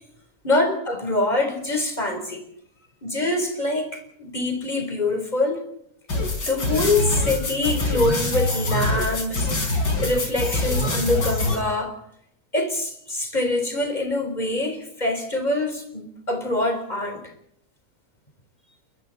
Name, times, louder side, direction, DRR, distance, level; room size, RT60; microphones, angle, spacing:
voice 1, 0.4-2.4 3.0-5.6 6.4-9.5 10.0-12.0 12.5-17.2, left 2 dB, 25° left, 4.4 m, -24 dB
sound 1, 6.1-11.6, left 2 dB, 75° left, 5.3 m, -24 dB
28.0 x 22.5 x 4.3 m
omnidirectional pair, 1.9 m